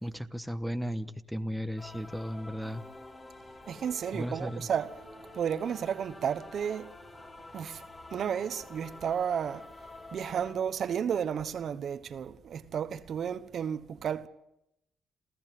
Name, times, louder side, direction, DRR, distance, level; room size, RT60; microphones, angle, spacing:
voice 1, 0.0-2.8 4.1-4.7, equal, ahead, 1.2 m, -35 dB
sound 1, 1.8-10.5, left 2 dB, 30° left, 5.3 m, -49 dB
voice 2, 3.7-5.0 5.3-6.9 7.5-7.8 8.1-9.7 10.1-14.3, right 8 dB, 60° right, 1.1 m, -32 dB
28.0 x 14.5 x 9.3 m
cardioid pair, 90°, 0 cm